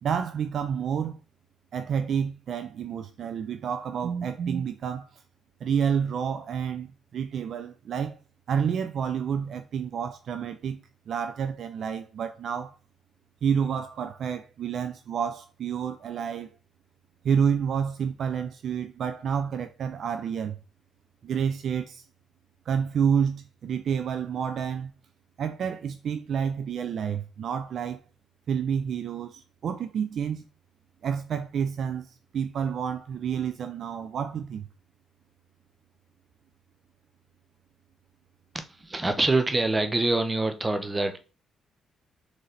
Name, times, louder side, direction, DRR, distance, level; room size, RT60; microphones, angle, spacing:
voice 1, 0.0-1.2 1.7-5.2 5.6-8.2 8.5-10.8 11.1-12.7 13.4-16.5 17.2-20.6 21.2-22.0 22.7-24.9 25.4-28.0 28.5-30.4 31.0-34.7, right 7 dB, 60° right, 0.4 m, -29 dB
voice 2, 38.5-41.2, right 2 dB, 20° right, 0.6 m, -25 dB
4.0 x 3.2 x 3.9 m
cardioid pair, 90°, 0 cm